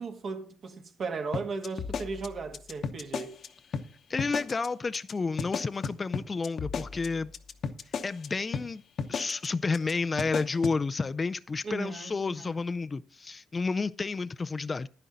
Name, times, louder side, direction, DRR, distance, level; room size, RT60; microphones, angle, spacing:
voice 1, 0.0-3.4 11.6-12.6, right 4 dB, 55° right, 1.8 m, -36 dB
sound 1, 1.3-3.5 3.7-3.9 4.2-4.7 4.9-5.1 5.4-8.3 8.5-8.7 9.0-9.5 9.7-9.9 10.2-10.8, left 6 dB, 60° left, 0.9 m, -34 dB
voice 2, 4.1-7.3 8.0-8.8 9.1-14.9, left 4 dB, 30° left, 0.4 m, -31 dB
11.0 x 10.0 x 3.9 m
cardioid pair, 90°, 0 cm